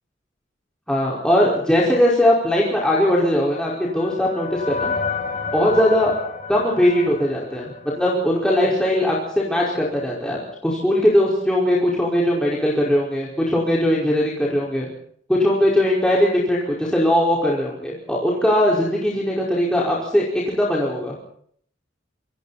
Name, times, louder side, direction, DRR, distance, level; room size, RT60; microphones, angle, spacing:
voice 1, 0.9-4.9 5.5-6.1 6.5-14.9 15.3-21.2, left 1 dB, 5° left, -5 dB, 5.1 m, -20 dB
sound 1, 3.1-8.4, left 4 dB, 40° left, 5.5 m, -31 dB
27.5 x 26.0 x 4.3 m, 0.63 s
head